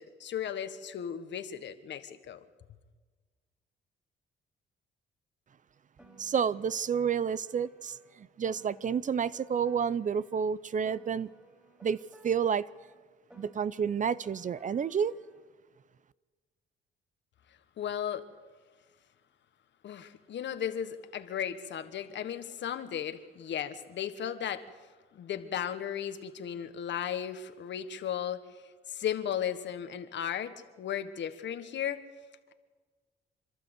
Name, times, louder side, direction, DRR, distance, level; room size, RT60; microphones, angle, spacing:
voice 1, 0.0-2.4 17.8-18.2 19.8-24.6 25.1-28.4 28.9-32.0, left 9 dB, 65° left, 1.4 m, -35 dB
Piano, 6.0-10.4 10.8-15.4, right 2 dB, 5° right, 3.1 m, -59 dB
voice 2, 6.2-11.3 11.8-12.0 12.2-12.7 13.4-15.1, right 7 dB, 40° right, 0.6 m, -30 dB
27.0 x 12.5 x 8.1 m
cardioid pair, 90°, 20 cm